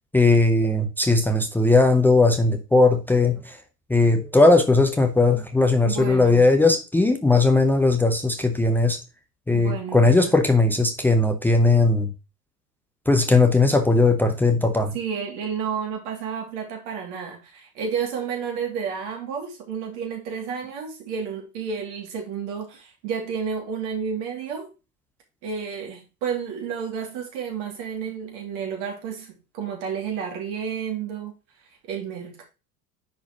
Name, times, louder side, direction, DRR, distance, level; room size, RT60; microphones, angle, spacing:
voice 1, 0.1-3.6 3.9-9.0 9.5-12.1 13.1-14.9, left 3 dB, 5° left, 0.7 m, -18 dB
voice 2, 5.8-6.5 9.5-10.3 14.9-24.7 25.4-31.3 31.8-32.4, right 6 dB, 50° right, 2.4 m, -31 dB
10.0 x 4.4 x 2.8 m
figure-of-eight pair, 85°, 47 cm